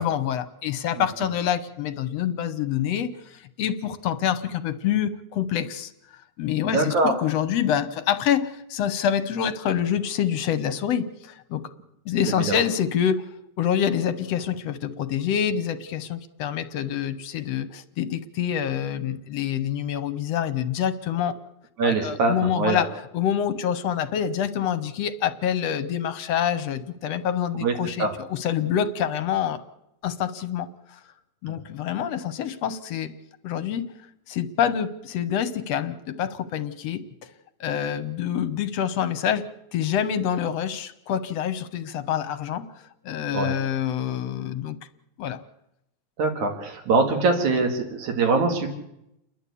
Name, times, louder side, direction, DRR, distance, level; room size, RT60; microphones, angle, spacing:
voice 1, 0.0-11.7 12.1-13.3 13.6-21.3 21.8-29.6 30.0-31.0 31.4-33.1 33.4-33.9 34.3-37.0 37.6-39.5 39.7-44.8 45.2-45.4, left 9 dB, 70° left, 12 dB, 1.9 m, -26 dB
voice 2, 6.6-7.2 12.4-12.6 21.8-22.8 27.6-27.7 28.0-28.1 31.5-31.6 43.3-43.6 46.2-48.7, right 3 dB, 85° right, 3 dB, 3.7 m, -23 dB
30.0 x 11.0 x 8.4 m, 0.82 s
omnidirectional pair, 3.3 m